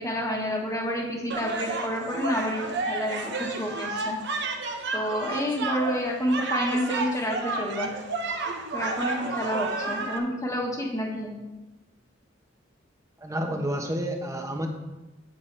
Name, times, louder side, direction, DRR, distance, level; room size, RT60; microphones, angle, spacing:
voice 1, 0.0-4.2 4.9-7.9 8.7-11.4, equal, 15° left, -1 dB, 1.4 m, -29 dB
sound 1, 1.3-10.2, right 3 dB, 60° right, 0.9 m, -31 dB
voice 2, 13.2-14.7, right 1 dB, 15° right, 4 dB, 1.0 m, -30 dB
9.2 x 8.7 x 3.3 m, 1.1 s
head